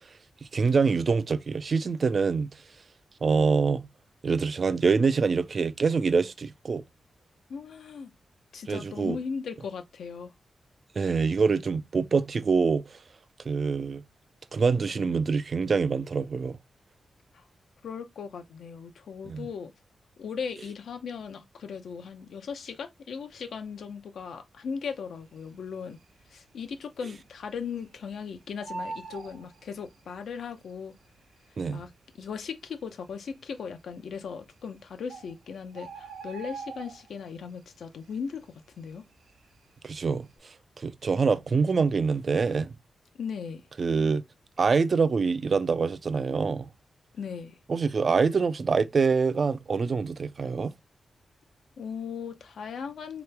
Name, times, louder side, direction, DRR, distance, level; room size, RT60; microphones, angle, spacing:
voice 1, 0.5-2.5 3.2-3.9 4.2-6.8 8.7-9.2 11.0-13.0 13.5-14.0 14.5-16.6 19.3-19.5 31.6-31.8 39.8-42.7 43.8-44.2 44.6-46.7 47.7-50.7, right 5 dB, 40° right, 0.3 m, -25 dB
voice 2, 7.5-8.1 8.5-10.3 17.3-17.4 17.8-19.7 20.2-26.0 26.3-30.9 31.7-31.9 32.2-38.5 38.8-39.0 43.1-43.6 47.1-47.6 51.8-53.2, left 6 dB, 90° left, 0.6 m, -37 dB
Bird, 25.7-26.3 26.6-26.7 27.0-28.2 28.4-30.3 31.1-31.2 31.8-31.9 32.1-32.3 32.9-33.4 34.3-34.4 34.8-34.9 35.1-37.4 37.7-38.0 38.4-39.7 40.1-40.3, right 4 dB, 80° right, 0.8 m, -42 dB
3.8 x 3.0 x 3.3 m
wide cardioid pair, 170°, 0 cm